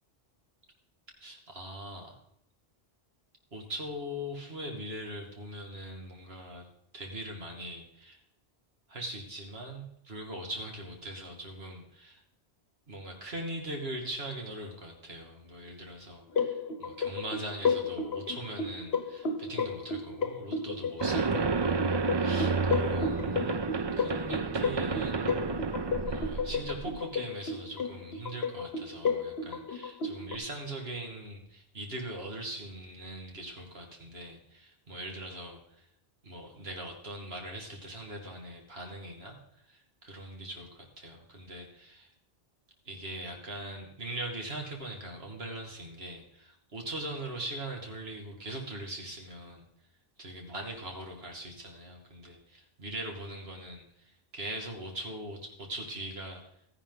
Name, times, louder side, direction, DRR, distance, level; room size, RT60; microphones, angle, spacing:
voice 1, 1.2-2.2 3.5-6.7 6.9-8.2 8.9-12.2 12.9-21.8 22.1-23.5 24.0-25.6 26.0-35.9 36.2-42.1 42.8-49.6 50.2-56.4, right 1 dB, 70° right, 1 dB, 2.6 m, -41 dB
sound 1, 16.3-30.4, left 4 dB, 70° left, 1.2 m, -33 dB
sound 2, 21.0-27.0, right 4 dB, 40° right, 0.4 m, -30 dB
13.5 x 11.0 x 4.0 m, 0.74 s
omnidirectional pair, 1.1 m